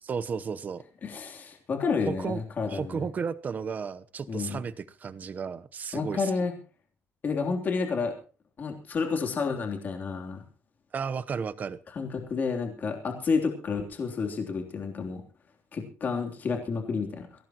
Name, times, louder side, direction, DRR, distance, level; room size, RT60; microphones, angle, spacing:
voice 1, 0.0-0.8 2.1-2.4 2.7-6.3 10.9-11.8, right 6 dB, 35° right, 14 dB, 1.0 m, -33 dB
voice 2, 1.0-3.1 4.3-4.6 5.9-6.5 7.2-8.1 8.6-10.4 11.9-15.2 15.7-17.3, left 5 dB, 35° left, 3 dB, 3.3 m, -30 dB
22.0 x 17.0 x 3.0 m, 0.37 s
cardioid pair, 150°, 5 cm